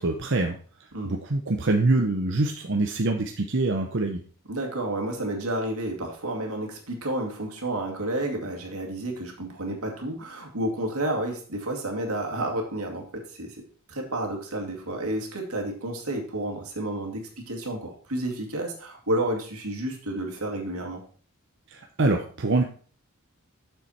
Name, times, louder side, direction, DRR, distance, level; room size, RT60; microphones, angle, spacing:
voice 1, 0.0-4.2 21.7-22.6, right 2 dB, 60° right, 3 dB, 0.8 m, -25 dB
voice 2, 4.5-13.6 13.9-21.0, right 1 dB, 85° right, 2 dB, 2.2 m, -31 dB
7.7 x 6.9 x 4.2 m, 0.43 s
head